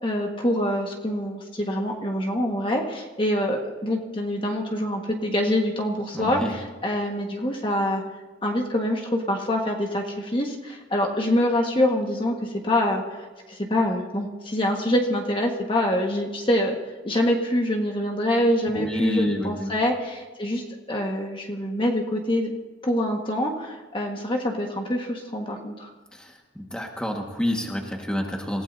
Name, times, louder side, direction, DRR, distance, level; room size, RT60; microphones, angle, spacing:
voice 1, 0.0-8.0 8.4-13.0 13.5-16.8 17.0-22.5 22.8-25.9, left 1 dB, 30° left, 1 dB, 1.6 m, -25 dB
voice 2, 6.1-6.5 18.7-19.7 26.2-28.6, equal, 5° left, 1 dB, 1.6 m, -28 dB
27.0 x 16.5 x 2.8 m, 1.3 s
head